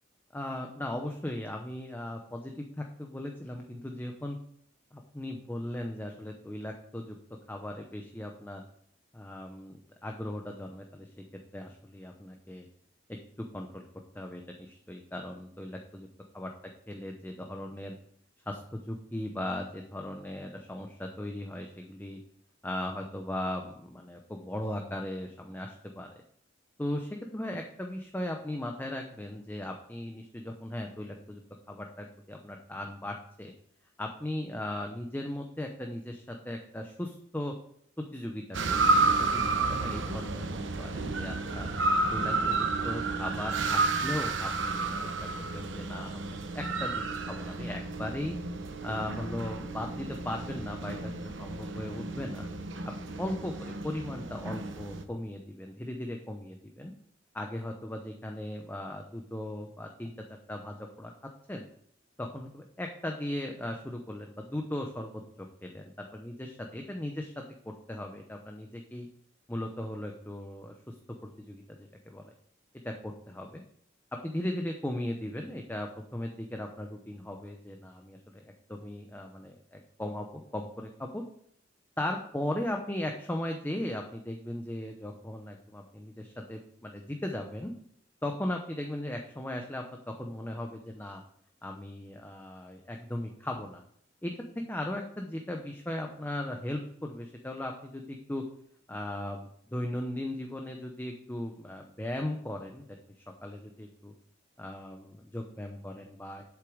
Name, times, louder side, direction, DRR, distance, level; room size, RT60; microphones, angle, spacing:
voice 1, 0.3-4.4 4.9-7.2 7.5-8.6 9.1-9.8 10.0-11.2 11.5-12.7 13.5-13.9 14.1-16.1 16.3-16.5 16.9-18.0 18.5-22.2 22.6-26.1 26.8-31.4 31.7-33.5 34.0-37.5 38.0-38.8 39.3-41.7 42.1-48.4 48.8-52.5 53.2-56.9 57.3-61.1 61.5-61.6 62.2-65.2 65.6-65.8 66.1-69.1 69.5-70.9 71.4-72.3 72.8-73.6 74.2-78.4 78.7-80.3 80.5-81.2 82.0-87.7 88.2-89.8 90.2-91.2 91.6-93.8 94.2-98.4 98.9-102.9 103.4-104.1 104.6-106.4, left 1 dB, 10° left, 3 dB, 0.8 m, -37 dB
sound 1, 38.5-55.0, right 3 dB, 75° right, 1.0 m, -31 dB
8.3 x 7.0 x 4.9 m, 0.67 s
head